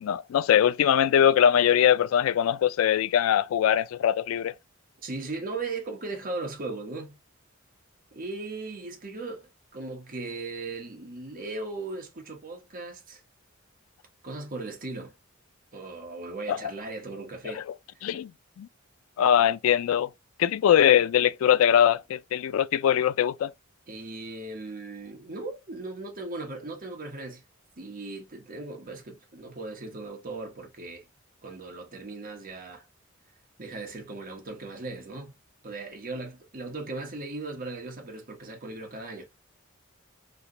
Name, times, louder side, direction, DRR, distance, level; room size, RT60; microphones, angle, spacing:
voice 1, 0.0-4.5 16.5-16.7 18.0-18.3 18.6-18.7 19.2-20.1 20.4-23.5, left 9 dB, 80° left, 0.3 m, -22 dB
voice 2, 5.0-7.2 8.1-9.5 9.7-13.2 14.2-15.1 15.7-17.6 23.9-27.4 27.8-31.0 31.4-32.8 33.6-35.3 35.6-39.3, right 3 dB, 45° right, 1.2 m, -37 dB
3.3 x 2.9 x 2.5 m
head